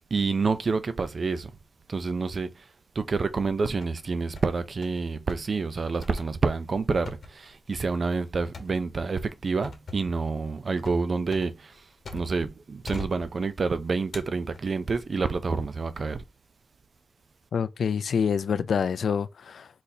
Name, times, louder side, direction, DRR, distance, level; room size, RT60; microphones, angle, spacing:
voice 1, 0.1-1.5 1.9-2.7 3.0-11.8 12.1-16.2, right 4 dB, 40° right, 0.4 m, -28 dB
sound 1, 3.3-4.0 4.4-5.0 5.3-5.5 6.0-12.5 12.9-13.7 14.1-15.1 15.6-16.0, left 2 dB, 50° left, 1.1 m, -43 dB
voice 2, 17.5-19.8, left 6 dB, 70° left, 0.3 m, -27 dB
4.0 x 4.0 x 2.7 m
wide cardioid pair, 130°, 0 cm